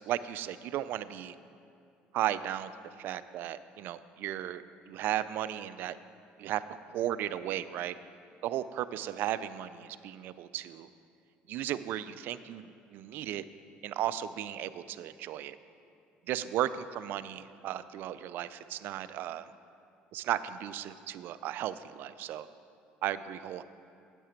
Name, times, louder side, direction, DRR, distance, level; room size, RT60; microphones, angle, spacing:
voice 1, 0.0-1.3 2.1-2.7 3.0-6.0 6.4-8.0 8.4-10.9 11.5-13.4 13.8-15.6 16.3-19.5 20.1-22.5 23.0-23.6, right 12 dB, 65° right, 14 dB, 0.4 m, -35 dB
10.0 x 8.2 x 4.5 m, 2.5 s
supercardioid pair, 90°, 4 cm